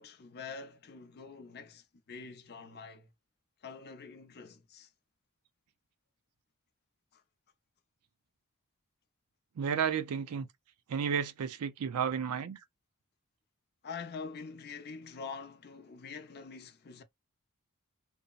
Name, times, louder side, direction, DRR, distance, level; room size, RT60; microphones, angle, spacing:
voice 1, 0.0-3.1 3.6-4.9 7.1-7.2 13.8-17.0, left 5 dB, 45° left, 0.5 m, -45 dB
voice 2, 9.6-10.5 10.9-12.6, right 7 dB, 75° right, 0.4 m, -32 dB
2.6 x 2.0 x 2.3 m
head